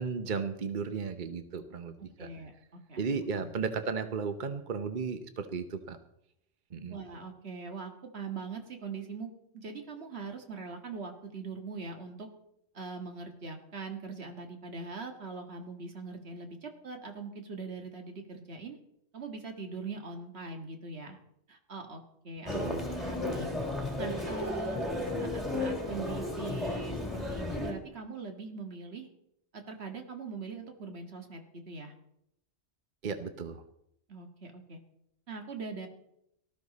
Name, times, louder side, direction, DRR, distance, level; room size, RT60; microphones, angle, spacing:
voice 1, 0.0-1.9 2.2-2.3 3.0-6.0 6.7-7.0 22.5-22.8 33.0-33.6, right 5 dB, 45° right, 9 dB, 1.1 m, -34 dB
voice 2, 2.0-3.0 3.4-3.5 6.9-12.3 12.7-18.8 19.1-21.2 21.5-23.5 24.0-24.8 25.2-29.1 29.5-31.4 31.7-31.9 34.1-34.8 35.3-35.9, right 4 dB, 65° right, 4 dB, 2.0 m, -42 dB
Human voice, 22.5-27.7, left 2 dB, ahead, 3.4 m, -34 dB
18.5 x 13.5 x 4.2 m, 0.78 s
omnidirectional pair, 1.2 m